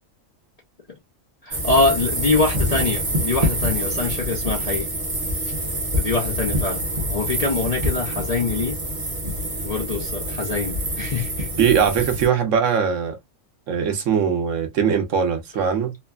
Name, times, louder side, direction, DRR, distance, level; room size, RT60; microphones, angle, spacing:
voice 1, 1.4-4.9 6.0-6.8 7.1-8.8 9.6-11.5, left 3 dB, 50° left, 0.4 m, -24 dB
sound 1, 1.5-12.3, equal, 30° right, 0.8 m, -26 dB
voice 2, 11.6-13.2 13.7-15.9, right 7 dB, 70° right, 1.1 m, -21 dB
3.0 x 2.1 x 2.2 m
omnidirectional pair, 1.4 m